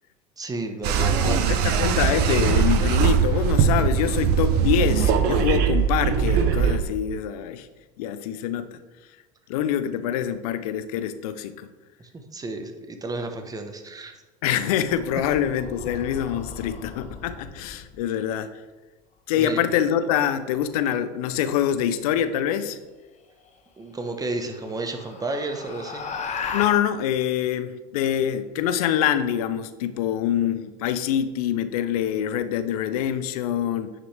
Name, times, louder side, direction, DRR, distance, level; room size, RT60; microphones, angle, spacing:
voice 1, 0.4-1.4 12.0-14.1 19.4-19.6 23.8-26.1, right 2 dB, 20° right, 5 dB, 1.2 m, -32 dB
sound 1, 0.8-6.8, right 7 dB, 60° right, 0.9 m, -21 dB
voice 2, 1.0-7.7 8.0-8.8 9.5-11.7 14.4-18.5 19.3-22.8 26.5-33.9, left 9 dB, 75° left, 12 dB, 0.6 m, -25 dB
sound 2, 14.5-18.0 20.3-20.8 22.8-22.9 23.4-23.5 24.0-26.7, left 5 dB, 35° left, 1.2 m, -37 dB
9.3 x 5.8 x 3.4 m, 1.2 s
hypercardioid pair, 80°, 19 cm